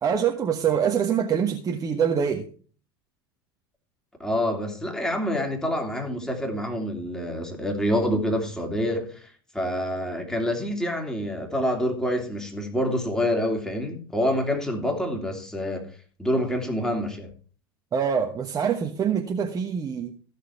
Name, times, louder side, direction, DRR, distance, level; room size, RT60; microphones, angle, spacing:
voice 1, 0.0-2.4 17.9-20.1, right 7 dB, 25° right, 1.2 m, -24 dB
voice 2, 4.2-15.8 16.2-17.3, equal, 5° left, 3.0 m, -27 dB
15.0 x 6.5 x 4.6 m
figure-of-eight pair, 80°, 13 cm